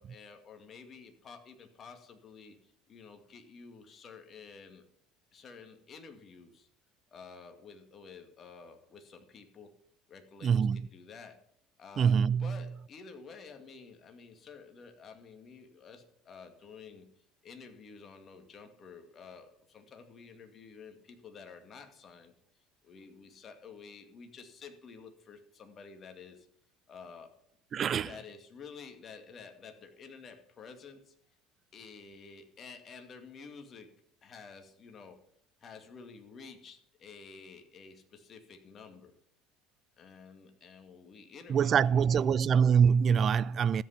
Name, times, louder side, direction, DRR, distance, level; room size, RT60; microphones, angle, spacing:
voice 1, 0.0-4.9 5.3-6.7 7.1-9.8 10.1-11.4 11.8-17.1 17.4-22.3 22.8-26.5 26.9-27.3 28.0-31.1 31.7-34.0 34.2-35.2 35.6-39.1 40.0-42.3, left 5 dB, 40° left, 2.2 m, -51 dB
voice 2, 10.4-10.8 12.0-12.6 27.7-28.1 41.5-43.8, right 7 dB, 40° right, 0.4 m, -24 dB
13.5 x 8.3 x 5.9 m
hypercardioid pair, 65°, 0 cm